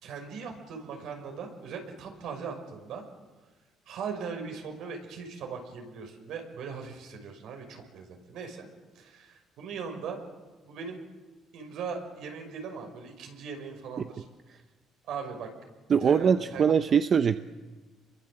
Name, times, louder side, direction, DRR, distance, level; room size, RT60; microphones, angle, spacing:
voice 1, 0.0-3.0 3.9-8.7 9.0-10.2 10.7-11.0 11.5-14.3 15.1-15.5 16.0-16.6, right 5 dB, 70° right, 4 dB, 5.8 m, -39 dB
voice 2, 15.9-17.4, right 7 dB, 40° right, 10 dB, 0.8 m, -22 dB
29.0 x 23.0 x 7.7 m, 1.3 s
cardioid pair, 140°, 0 cm